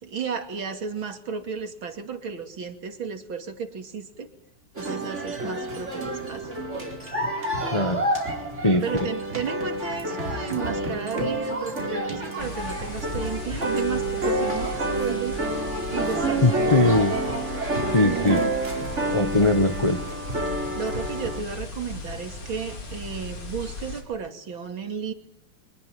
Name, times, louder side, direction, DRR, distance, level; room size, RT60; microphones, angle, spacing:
voice 1, 0.0-4.3 4.8-6.5 8.8-15.4 15.9-16.4 18.0-18.5 20.8-25.1, right 6 dB, 65° right, 6 dB, 3.3 m, -33 dB
sound 1, 4.8-21.4, right 1 dB, 30° right, 4.7 m, -28 dB
voice 2, 7.7-8.0 8.6-8.8 16.4-17.2 17.9-18.4 19.1-20.0, left 2 dB, 20° left, 8 dB, 0.9 m, -20 dB
sound 2, 12.4-24.0, left 3 dB, 80° left, 5.2 m, -37 dB
25.0 x 20.0 x 9.1 m, 0.75 s
omnidirectional pair, 2.4 m